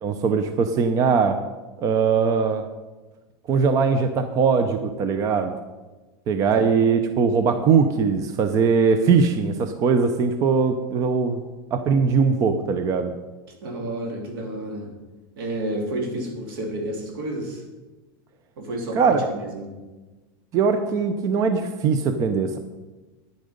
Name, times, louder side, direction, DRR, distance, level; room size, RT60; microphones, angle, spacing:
voice 1, 0.0-1.4 1.8-2.6 3.5-5.5 6.3-11.4 11.7-13.1 18.9-19.2 20.5-22.6, right 5 dB, 30° right, 9 dB, 0.6 m, -21 dB
voice 2, 13.6-14.9 15.4-17.6 18.6-19.7, right 1 dB, 75° right, 2 dB, 3.2 m, -30 dB
10.5 x 9.8 x 5.2 m, 1.2 s
supercardioid pair, 155°, 12 cm